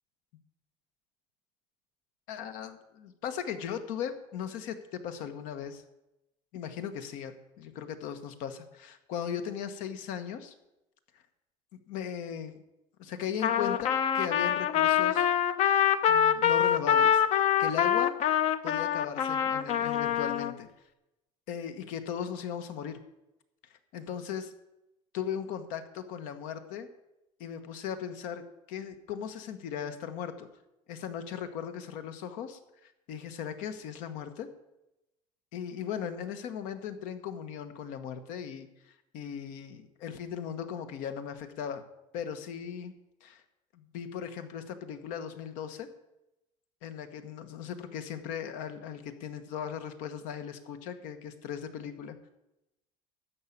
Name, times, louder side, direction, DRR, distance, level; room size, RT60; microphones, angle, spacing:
voice 1, 2.3-5.8 6.5-10.5 11.9-12.6 13.0-15.3 16.1-17.2 17.6-18.1 18.6-20.7 21.5-23.0 23.9-24.5 25.1-26.9 27.4-30.5 30.9-34.5 35.5-38.7 39.1-41.8 42.1-42.9 43.2-43.4 43.7-45.9 46.8-52.2, left 8 dB, 85° left, 9 dB, 1.3 m, -38 dB
Trumpet, 13.4-20.5, left 9 dB, 55° left, 0.7 m, -25 dB
13.0 x 5.6 x 8.5 m, 0.92 s
cardioid pair, 135°, 13 cm